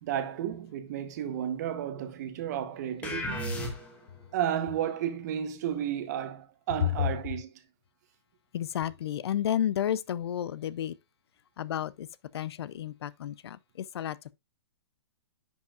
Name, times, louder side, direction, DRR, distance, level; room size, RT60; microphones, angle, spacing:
voice 1, 0.0-3.5 4.3-7.5, right 10 dB, 40° right, 1.0 m, -32 dB
sound 1, 3.0-4.2, left 1 dB, 10° left, 1.3 m, -34 dB
voice 2, 8.5-10.9 11.6-12.1 12.3-14.2, left 10 dB, 65° left, 0.5 m, -31 dB
10.0 x 5.4 x 2.4 m
hypercardioid pair, 170°, 14 cm